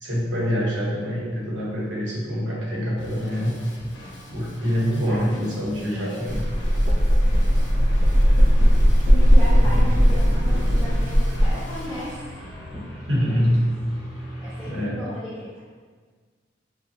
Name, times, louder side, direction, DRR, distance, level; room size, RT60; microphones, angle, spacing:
voice 1, 0.0-3.5 4.3-6.4 9.6-9.8 13.1-13.6 14.7-15.1, equal, 90° right, -4 dB, 1.0 m, -25 dB
Drum kit / Drum, 3.0-12.2, equal, 80° left, 0.6 m, -42 dB
voice 2, 5.0-5.4 5.8-6.2 9.1-12.9 14.4-15.6, equal, 5° left, -13 dB, 0.6 m, -36 dB
sound 1, 6.3-11.5, equal, 65° right, 0.5 m, -17 dB
sound 2, 7.3-14.8, left 1 dB, 30° right, 1.1 m, -38 dB
4.8 x 2.3 x 2.8 m, 1.5 s
head